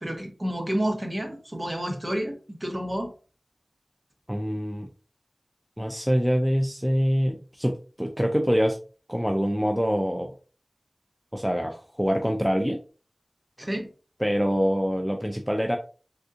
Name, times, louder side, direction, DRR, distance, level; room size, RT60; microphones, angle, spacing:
voice 1, 0.0-3.1 13.6-13.9, equal, 30° right, 3 dB, 0.9 m, -30 dB
voice 2, 4.3-4.9 5.8-8.8 9.1-10.3 11.3-12.8 14.2-15.8, equal, 5° right, 3 dB, 0.4 m, -25 dB
3.4 x 2.7 x 2.4 m, 0.36 s
wide cardioid pair, 45°, 0 cm